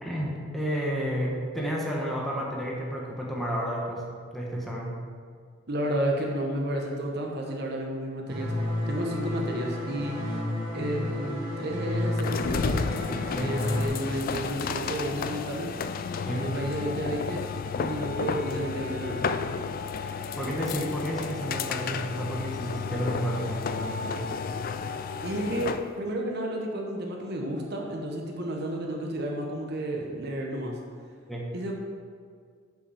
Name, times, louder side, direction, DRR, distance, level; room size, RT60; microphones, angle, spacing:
voice 1, 0.0-4.0 4.3-4.9 13.3-13.5 16.2-16.5 20.0-24.3 31.3-31.5, equal, ahead, -4 dB, 1.2 m, -31 dB
voice 2, 5.7-8.5 8.9-10.2 10.7-12.7 13.4-15.7 16.3-17.4 17.8-19.2 25.2-30.7 31.5-31.7, right 1 dB, 55° right, 0 dB, 1.0 m, -31 dB
sound 1, 8.3-13.9, left 1 dB, 25° right, 1.9 m, -31 dB
sound 2, 12.2-25.9, left 5 dB, 45° left, 0.3 m, -32 dB
8.0 x 5.8 x 4.9 m, 2.1 s
head